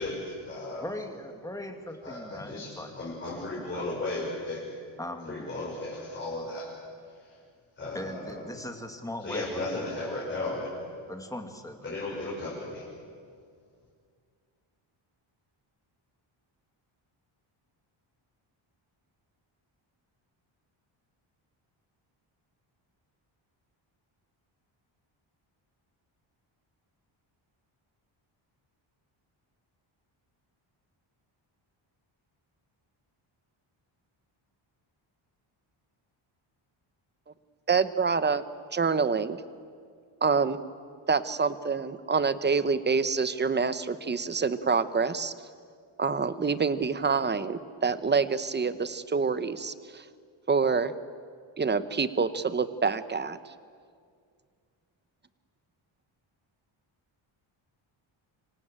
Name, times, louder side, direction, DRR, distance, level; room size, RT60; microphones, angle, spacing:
voice 1, 0.0-0.9 2.0-4.7 5.3-6.7 7.8-8.4 9.2-10.7 11.8-12.9, left 2 dB, 25° left, -6 dB, 6.0 m, -35 dB
voice 2, 0.8-3.0 3.3-3.4 3.7-3.8 5.0-5.4 7.9-10.3 11.1-11.9, left 1 dB, 5° left, 5 dB, 2.2 m, -39 dB
voice 3, 37.7-38.4 38.7-39.4 40.2-40.6 41.1-45.3 46.0-50.0 50.5-50.9 51.6-53.5, right 5 dB, 20° right, 13 dB, 0.9 m, -26 dB
26.5 x 25.5 x 8.7 m, 2.2 s
wide cardioid pair, 170°, 49 cm